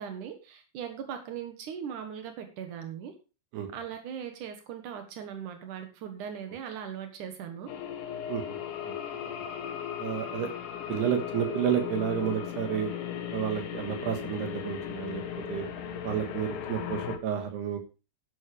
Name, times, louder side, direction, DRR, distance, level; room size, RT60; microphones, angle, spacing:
voice 1, 0.0-3.2 3.7-7.7, right 8 dB, 85° right, 6 dB, 1.8 m, -39 dB
sound 1, 7.7-17.2, left 9 dB, 80° left, 1.8 m, -37 dB
voice 2, 10.0-10.5 10.9-12.9 13.3-15.2 15.5-15.6 16.0-17.8, right 9 dB, 65° right, 6 dB, 3.1 m, -30 dB
12.0 x 12.0 x 3.4 m, 0.32 s
omnidirectional pair, 5.9 m